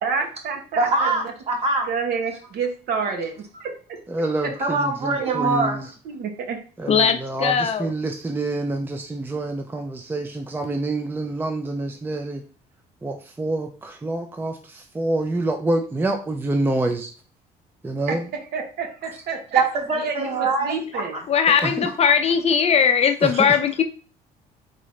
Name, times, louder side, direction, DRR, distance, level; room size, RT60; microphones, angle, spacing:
voice 1, 0.0-1.1 1.9-4.0 5.2-5.3 6.1-6.6 18.1-19.6 20.0-21.2, right 5 dB, 70° right, 1.1 m, -29 dB
voice 2, 0.8-1.9 4.6-5.8 19.5-21.7 23.3-23.4, right 3 dB, 40° right, 1.5 m, -24 dB
voice 3, 4.1-5.9 6.8-12.4 13.0-17.1 17.8-18.2 21.6-21.9 23.2-23.5, right 2 dB, 10° right, 0.5 m, -27 dB
voice 4, 6.9-7.9 21.3-23.8, left 7 dB, 40° left, 0.5 m, -19 dB
3.8 x 3.7 x 3.2 m
cardioid pair, 110°, 17 cm